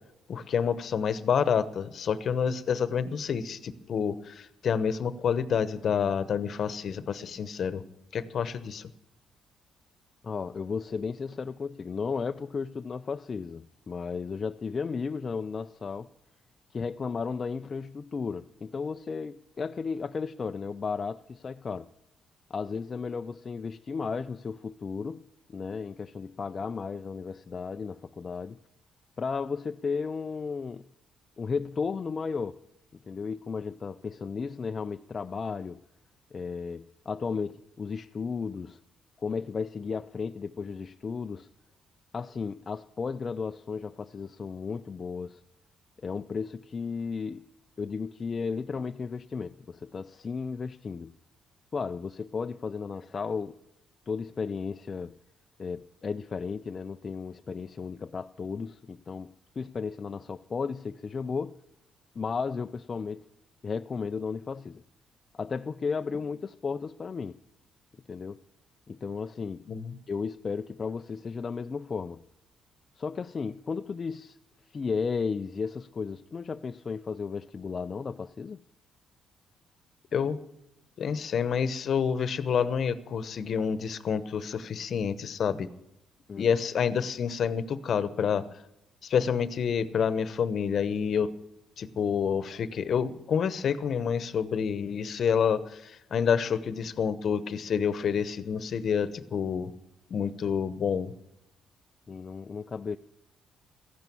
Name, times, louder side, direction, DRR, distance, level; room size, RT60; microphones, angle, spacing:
voice 1, 0.3-7.8 8.1-8.9 69.7-70.0 80.1-80.4 81.0-85.7 86.4-88.4 89.0-91.3 91.8-99.7 100.1-101.1, left 7 dB, 55° left, 1.0 m, -28 dB
voice 2, 10.2-16.1 16.7-21.9 22.5-25.2 25.5-28.6 29.2-30.8 31.4-32.6 33.1-35.8 36.3-38.8 39.2-41.5 42.1-45.4 46.0-47.4 47.8-51.1 51.7-53.5 54.1-55.2 55.6-61.6 62.2-63.3 63.6-64.8 65.3-67.4 68.1-68.4 68.9-69.7 70.1-72.2 73.0-74.4 74.7-78.6 86.3-86.5 102.1-103.0, left 5 dB, 40° left, 0.4 m, -34 dB
14.5 x 11.0 x 7.0 m
cardioid pair, 90°, 0 cm